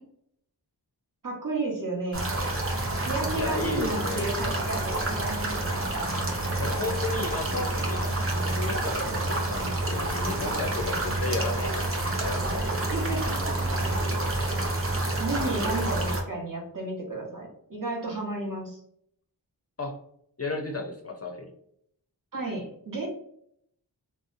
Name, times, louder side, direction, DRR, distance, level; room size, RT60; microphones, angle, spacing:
voice 1, 1.2-2.3 3.1-6.0 12.9-13.4 15.2-18.8 22.3-23.1, right 2 dB, 45° right, -1 dB, 1.0 m, -32 dB
sound 1, 2.1-16.2, right 2 dB, 30° right, 0.5 m, -28 dB
voice 2, 3.4-4.3 6.6-12.8 19.8-20.0 20.4-21.5, left 3 dB, 35° left, 2 dB, 0.4 m, -34 dB
2.6 x 2.0 x 2.5 m, 0.70 s
wide cardioid pair, 40°, 43 cm